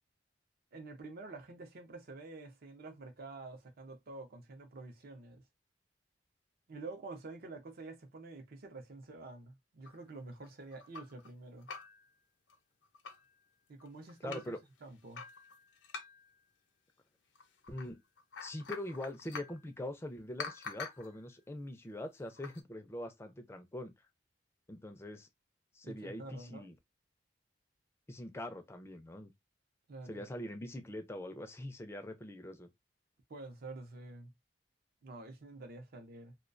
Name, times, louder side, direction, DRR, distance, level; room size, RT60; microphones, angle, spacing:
voice 1, 0.7-5.4 6.7-11.7 13.7-14.4 14.8-15.2 25.8-26.7 29.9-30.2 33.3-34.3 35.0-36.4, right 3 dB, 55° right, 0.6 m, -48 dB
sound 1, 9.8-11.3 11.6-12.1 12.5-12.6 12.8-13.3 13.8-14.5 15.1-16.4 17.3-17.9 18.2-19.6 20.4-21.1 22.3-22.6, left 5 dB, 85° left, 0.5 m, -46 dB
voice 2, 14.2-14.6 17.7-18.0 18.4-23.9 24.7-25.3 25.7-26.8 28.1-29.3 30.1-32.7, left 1 dB, 15° left, 0.4 m, -43 dB
2.3 x 2.2 x 2.4 m
head